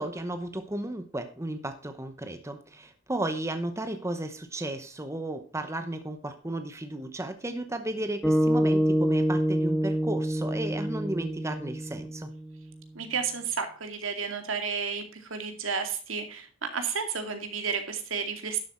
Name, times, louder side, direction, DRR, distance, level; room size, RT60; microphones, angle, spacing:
voice 1, 0.0-12.3, right 1 dB, 15° right, 8 dB, 0.9 m, -34 dB
sound 1, 8.2-12.6, equal, ahead, 2.2 m, -26 dB
voice 2, 12.9-18.6, right 6 dB, 75° right, 6 dB, 2.3 m, -32 dB
12.0 x 7.7 x 4.4 m, 0.40 s
head